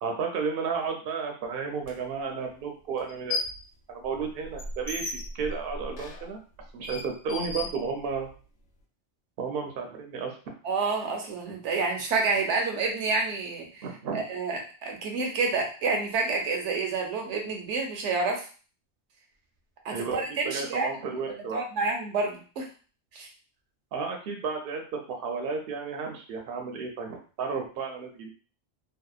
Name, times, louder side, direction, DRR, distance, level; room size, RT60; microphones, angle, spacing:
voice 1, 0.0-3.4 3.9-6.4 6.7-8.3 9.4-10.4 13.8-14.2 19.9-21.6 23.9-28.3, right 5 dB, 65° right, 2 dB, 0.7 m, -33 dB
sound 1, 1.8-1.9 3.0-3.7 4.0-8.4, left 2 dB, 85° left, 0.9 m, -36 dB
voice 2, 10.6-13.9 14.1-18.5 19.8-20.9 21.5-22.7 23.1-23.3, right 4 dB, 90° right, 2 dB, 1.0 m, -29 dB
2.7 x 2.0 x 2.3 m, 0.37 s
omnidirectional pair, 1.2 m